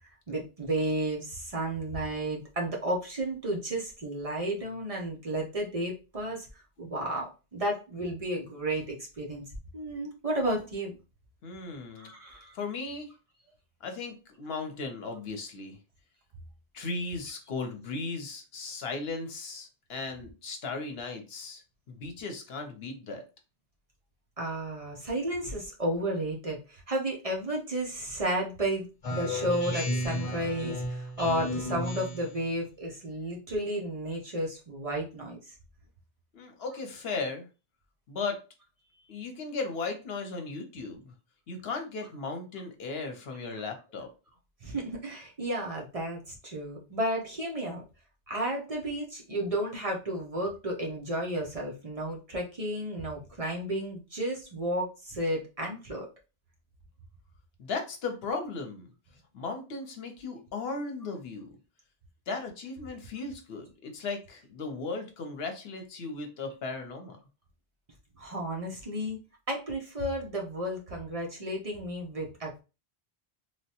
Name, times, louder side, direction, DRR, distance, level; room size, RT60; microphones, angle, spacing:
voice 1, 0.3-9.4 9.7-10.9 12.0-12.6 24.4-35.5 44.6-47.8 48.3-56.1 68.2-69.2 69.5-72.6, right 1 dB, 40° right, -1 dB, 0.6 m, -32 dB
voice 2, 11.4-12.1 12.5-13.1 13.8-15.8 16.7-21.6 21.9-23.2 36.3-37.5 38.1-38.4 39.1-41.1 41.5-44.1 57.6-58.9 59.3-61.5 62.3-67.2, left 3 dB, 75° left, 5 dB, 0.9 m, -36 dB
Speech synthesizer, 29.0-32.4, left 1 dB, 40° left, 1.0 m, -33 dB
3.1 x 2.1 x 2.8 m, 0.30 s
omnidirectional pair, 1.0 m